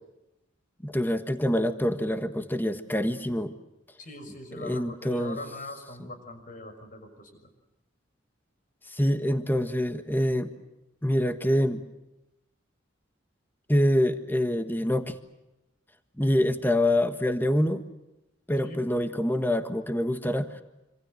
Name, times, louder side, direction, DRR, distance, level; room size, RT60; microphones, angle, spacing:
voice 1, 0.8-3.5 4.6-5.4 8.9-10.5 11.0-11.8 13.7-15.2 16.2-17.8 18.5-20.6, left 1 dB, 10° left, 8 dB, 1.5 m, -26 dB
voice 2, 4.0-7.4 18.6-18.8, left 2 dB, 45° left, 7 dB, 6.2 m, -41 dB
26.5 x 26.5 x 6.6 m, 0.95 s
head